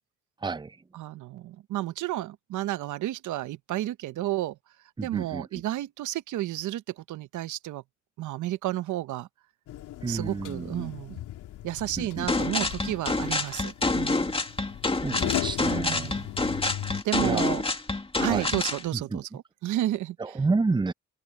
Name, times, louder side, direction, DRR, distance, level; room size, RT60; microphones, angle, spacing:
voice 1, 0.4-0.8 5.0-5.6 10.0-10.9 12.0-12.7 15.0-16.2 17.2-17.5 18.3-18.5 18.9-19.2 20.2-20.9, right 3 dB, 15° right, 0.7 m, -30 dB
voice 2, 0.9-4.6 5.0-7.8 8.2-9.3 10.1-11.2 11.6-14.3 15.7-16.3 17.0-17.6 18.2-20.2, right 14 dB, 80° right, 0.9 m, -32 dB
sound 1, 9.7-17.0, left 13 dB, 85° left, 2.7 m, -37 dB
sound 2, 12.3-18.8, left 3 dB, 20° left, 2.4 m, -27 dB
open air
cardioid pair, 90°, 30 cm